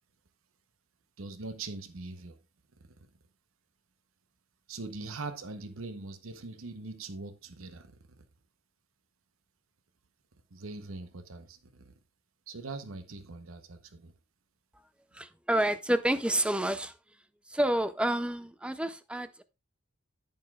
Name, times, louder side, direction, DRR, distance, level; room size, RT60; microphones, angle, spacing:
voice 1, 1.2-2.4 4.7-7.9 8.2-8.3 10.5-11.9 12.5-14.1, right 3 dB, 80° right, 0.9 m, -42 dB
voice 2, 15.1-17.0 17.5-19.4, right 1 dB, 5° right, 0.5 m, -29 dB
10.5 x 9.7 x 2.3 m
head